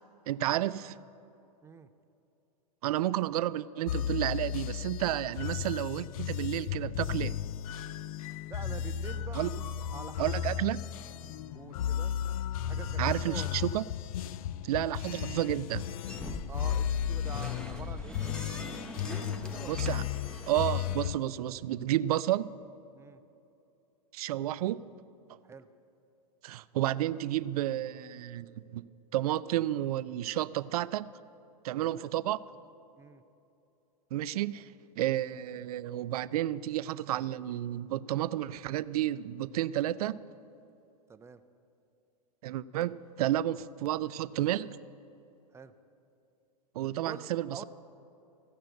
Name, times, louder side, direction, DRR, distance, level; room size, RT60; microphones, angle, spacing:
voice 1, 0.3-1.0 2.8-7.4 9.3-9.5 10.2-10.8 13.0-13.8 14.6-16.0 19.6-20.0 20.5-22.5 24.1-24.8 26.4-28.8 29.1-31.1 31.6-32.4 34.1-40.2 42.4-44.8 46.8-47.6, right 13 dB, 65° right, 17 dB, 0.4 m, -31 dB
sound 1, 3.9-21.2, left 10 dB, 60° left, 0.4 m, -34 dB
voice 2, 8.5-9.6 9.9-10.5 11.5-12.2 12.6-13.7 14.8-14.9 16.5-20.4 22.9-23.2 25.4-25.7 31.8-32.1 33.0-33.2 41.1-41.4 45.5-45.7 47.0-47.6, right 5 dB, 15° right, 11 dB, 0.5 m, -47 dB
sound 2, 16.1-21.1, equal, 5° left, 0.9 m, -43 dB
15.0 x 6.7 x 7.8 m, 2.8 s
hypercardioid pair, 105°, 20 cm